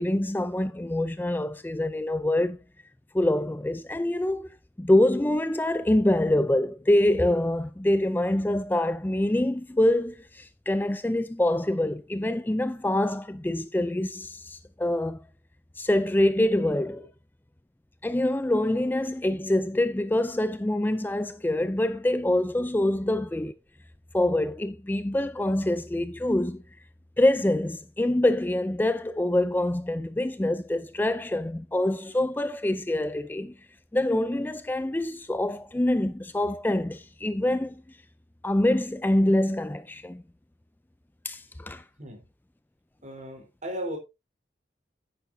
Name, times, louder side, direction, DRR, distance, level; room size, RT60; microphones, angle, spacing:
voice 1, 0.0-2.6 3.1-4.5 4.8-15.2 15.8-17.1 18.0-23.5 24.1-26.6 27.2-33.5 33.9-37.8 38.4-40.2 41.2-41.8, left 1 dB, 10° left, 0.4 m, -25 dB
voice 2, 43.0-44.0, equal, 40° right, 3.9 m, -36 dB
10.5 x 9.7 x 2.7 m
head